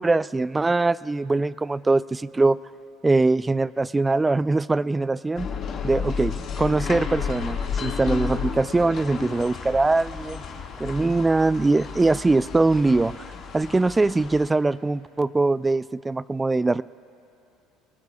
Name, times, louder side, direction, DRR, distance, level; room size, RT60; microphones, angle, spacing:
voice 1, 0.0-2.6 3.0-5.5 5.8-10.4 10.8-13.1 13.5-16.8, right 3 dB, 15° right, 18 dB, 0.3 m, -22 dB
sound 1, 5.4-14.5, left 6 dB, 50° left, 1.9 m, -32 dB
29.5 x 19.5 x 2.4 m, 2.8 s
supercardioid pair, 95°, 0 cm